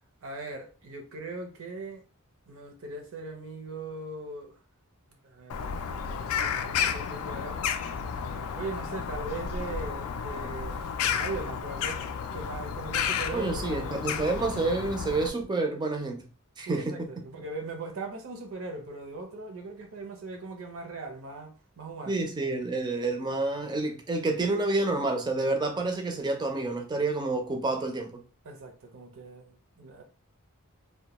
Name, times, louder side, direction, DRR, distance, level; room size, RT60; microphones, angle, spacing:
voice 1, 0.2-2.0 2.5-4.6 5.2-7.6 8.5-12.0 12.3-14.3 16.6-22.2 28.4-30.0, right 3 dB, 65° right, 0.6 m, -40 dB
Bird vocalization bird call bird song, 5.5-15.3, left 7 dB, 70° left, 0.3 m, -32 dB
voice 2, 13.3-16.2 16.6-17.1 22.1-28.2, right 2 dB, 20° right, 0.4 m, -29 dB
2.2 x 2.1 x 2.9 m
head